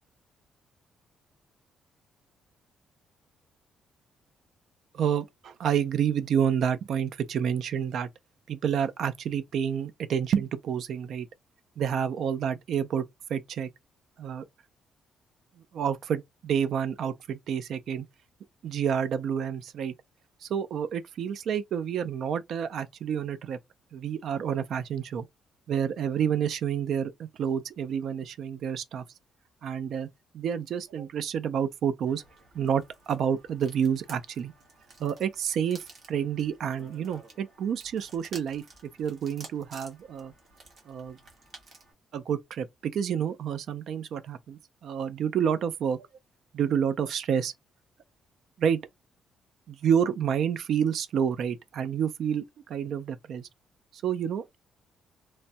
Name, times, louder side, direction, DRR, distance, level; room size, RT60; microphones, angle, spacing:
voice 1, 4.9-8.1 8.5-11.3 11.8-13.7 14.2-14.4 15.7-18.1 18.6-19.9 20.4-23.6 23.9-25.3 25.7-29.0 29.6-30.1 30.3-32.2 32.5-34.5 35.0-38.6 39.0-40.3 40.9-41.2 42.1-46.1 46.5-47.5 48.6-48.8 49.7-53.5 53.9-54.6, right 8 dB, 60° right, 0.4 m, -29 dB
sound 1, 32.1-41.9, right 3 dB, 40° right, 1.3 m, -52 dB
3.1 x 2.2 x 2.7 m
cardioid pair, 155°, 0 cm